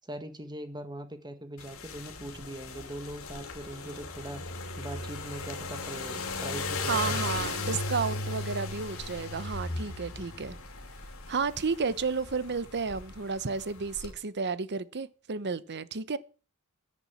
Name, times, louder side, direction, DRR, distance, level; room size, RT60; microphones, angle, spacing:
voice 1, 0.0-4.4 4.8-7.5, right 1 dB, 20° right, 1.7 m, -41 dB
sound 1, 1.6-14.1, left 3 dB, 65° left, 2.8 m, -37 dB
voice 2, 6.9-10.6 11.3-16.2, right 5 dB, 50° right, 0.9 m, -32 dB
10.5 x 8.7 x 7.4 m
head